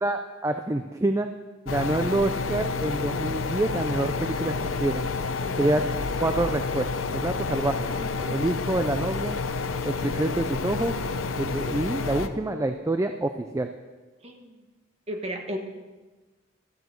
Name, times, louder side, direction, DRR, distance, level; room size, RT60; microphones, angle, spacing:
voice 1, 0.0-1.3 1.7-4.5 4.8-5.0 5.6-5.8 6.2-6.9 7.1-7.8 8.3-9.4 9.8-10.9 11.4-13.7, right 2 dB, 15° right, 7 dB, 0.4 m, -27 dB
sound 1, 1.7-12.3, left 4 dB, 85° left, 0.7 m, -29 dB
sound 2, 2.3-12.8, left 13 dB, 35° left, 2.1 m, -43 dB
voice 2, 5.4-6.0 8.0-8.3 14.2-14.6 15.1-15.6, equal, 30° right, 3 dB, 1.3 m, -36 dB
13.5 x 7.8 x 6.5 m, 1.3 s
head